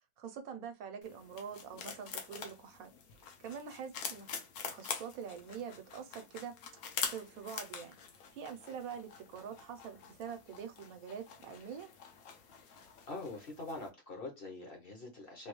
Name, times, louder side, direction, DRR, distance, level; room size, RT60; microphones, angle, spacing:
voice 1, 0.2-2.9 3.4-4.3 4.6-8.0 8.3-11.9, right 7 dB, 75° right, 1.0 m, -45 dB
sound 1, 1.0-13.9, left 6 dB, 75° left, 1.1 m, -45 dB
voice 2, 13.1-15.5, left 2 dB, 50° left, 0.8 m, -44 dB
3.3 x 2.2 x 2.9 m
omnidirectional pair, 1.6 m